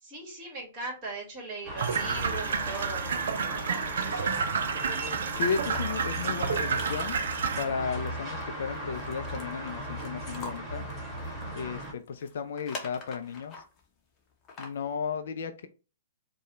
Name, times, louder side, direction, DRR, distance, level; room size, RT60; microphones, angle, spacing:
voice 1, 0.0-4.5, right 3 dB, 25° right, 0 dB, 2.0 m, -40 dB
sound 1, 1.6-11.9, right 1 dB, ahead, 2.1 m, -37 dB
sound 2, 1.8-7.6, right 6 dB, 55° right, 0.4 m, -30 dB
voice 2, 5.3-7.2 7.6-10.9 11.5-13.6 14.6-15.7, left 6 dB, 55° left, 8 dB, 0.4 m, -34 dB
sound 3, 5.4-13.8 14.3-14.9, left 3 dB, 20° left, 0.9 m, -46 dB
4.6 x 2.3 x 3.0 m, 0.33 s
figure-of-eight pair, 115°, 0 cm